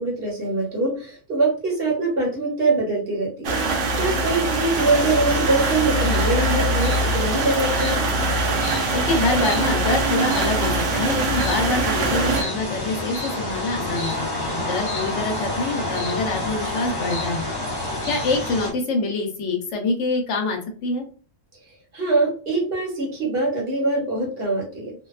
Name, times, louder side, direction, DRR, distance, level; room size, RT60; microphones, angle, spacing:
voice 1, 0.0-8.1 21.9-24.9, right 2 dB, 55° right, -1 dB, 1.0 m, -23 dB
sound 1, 3.4-12.4, right 2 dB, 75° right, 0.9 m, -23 dB
sound 2, 4.7-18.7, left 2 dB, 20° left, 0.8 m, -30 dB
voice 2, 8.9-17.5 18.0-21.1, left 3 dB, 75° left, 3 dB, 1.0 m, -25 dB
2.6 x 2.2 x 2.3 m, 0.39 s
omnidirectional pair, 1.3 m